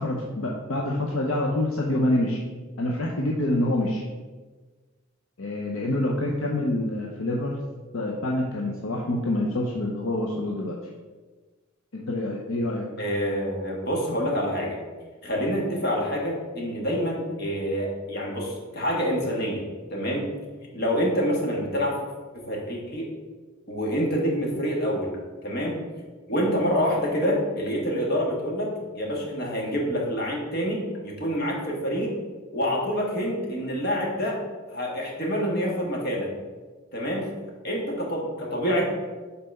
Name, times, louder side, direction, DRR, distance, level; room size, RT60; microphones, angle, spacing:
voice 1, 0.0-2.4 2.8-4.0 5.4-7.6 7.9-10.8 11.9-12.8 26.4-26.6, left 1 dB, 70° left, -1 dB, 0.7 m, -26 dB
voice 2, 13.0-14.8 15.2-19.6 19.9-20.3 20.7-22.0 22.3-23.1 23.7-25.1 25.4-25.8 26.3-32.2 32.5-34.4 34.7-36.3 36.9-37.3 37.6-38.8, equal, 50° left, -1 dB, 1.5 m, -27 dB
5.6 x 4.2 x 5.4 m, 1.4 s
head